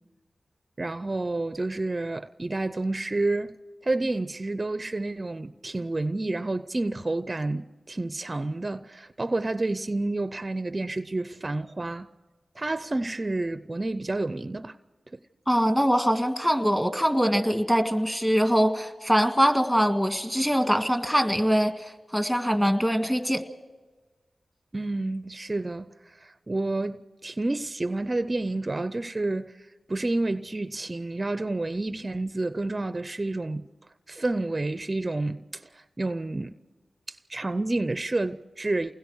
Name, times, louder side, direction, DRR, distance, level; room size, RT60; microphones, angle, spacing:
voice 1, 0.8-3.6 3.8-12.1 12.6-14.8 15.1-15.2 24.7-33.7 34.1-36.5 37.1-38.9, right 2 dB, 35° right, 0.6 m, -29 dB
voice 2, 15.5-23.4, equal, 5° left, 1.8 m, -23 dB
29.0 x 20.5 x 4.7 m
cardioid pair, 55°, 0 cm